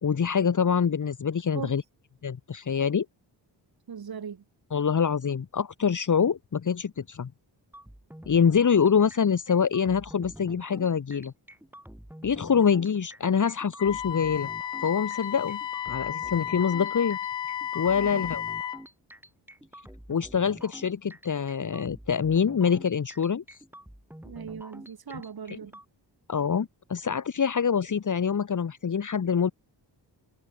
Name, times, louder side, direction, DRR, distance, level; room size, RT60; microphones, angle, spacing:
voice 1, 0.0-1.8 2.2-3.1 4.7-7.3 8.3-11.3 12.2-14.5 14.8-15.6 15.9-17.2 17.7-18.4 20.1-23.6 25.5-25.6 26.3-29.5, left 7 dB, 45° left, 2.1 m, -25 dB
voice 2, 3.9-4.4 18.0-18.3 24.2-25.7, right 7 dB, 55° right, 7.9 m, -39 dB
sound 1, 7.7-25.9, right 1 dB, 5° right, 5.5 m, -47 dB
Wind instrument woodwind instrument, 13.8-18.8, left 10 dB, 85° left, 5.6 m, -33 dB
cardioid pair, 95°, 43 cm